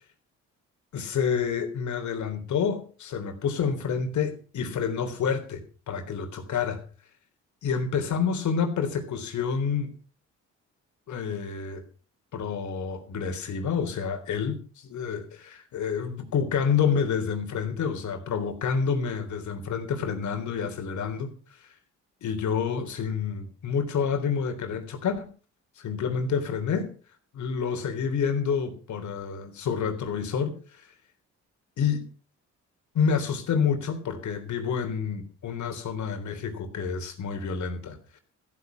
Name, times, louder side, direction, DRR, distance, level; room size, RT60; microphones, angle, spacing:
voice 1, 0.9-6.8 7.6-9.9 11.1-11.8 12.3-21.3 22.2-25.3 25.8-26.9 27.3-30.9 31.8-32.1 32.9-38.0, left 6 dB, 70° left, 7 dB, 3.6 m, -28 dB
15.0 x 9.6 x 5.9 m, 0.38 s
cardioid pair, 90°, 30 cm